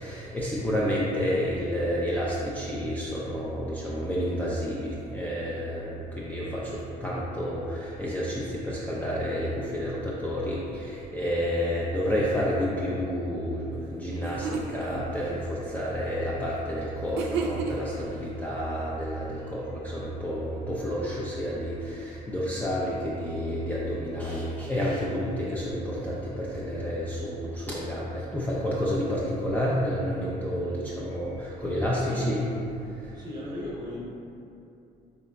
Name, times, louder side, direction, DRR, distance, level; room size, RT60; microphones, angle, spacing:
voice 1, 0.0-32.4 33.0-33.1, equal, 10° left, -7 dB, 0.4 m, -30 dB
sound 1, 13.8-13.9 14.2-14.9 17.2-18.0, right 5 dB, 80° right, 0.4 m, -31 dB
voice 2, 32.0-32.4 33.1-34.0, left 1 dB, 25° right, -5 dB, 0.9 m, -37 dB
3.9 x 3.3 x 2.2 m, 2.7 s
cardioid pair, 110°, 17 cm